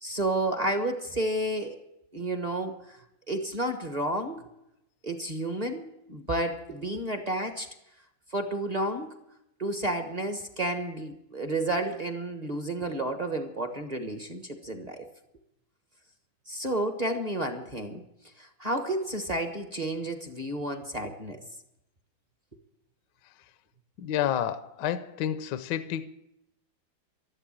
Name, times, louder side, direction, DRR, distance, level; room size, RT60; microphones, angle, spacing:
voice 1, 0.0-1.8 2.1-3.0 3.3-4.4 5.0-7.7 8.3-9.1 9.6-15.0 16.5-18.0 18.4-21.4, right 1 dB, 25° right, 6 dB, 1.0 m, -31 dB
voice 2, 24.0-26.1, left 10 dB, 70° left, 12 dB, 1.2 m, -30 dB
12.5 x 11.5 x 8.9 m, 0.85 s
omnidirectional pair, 2.2 m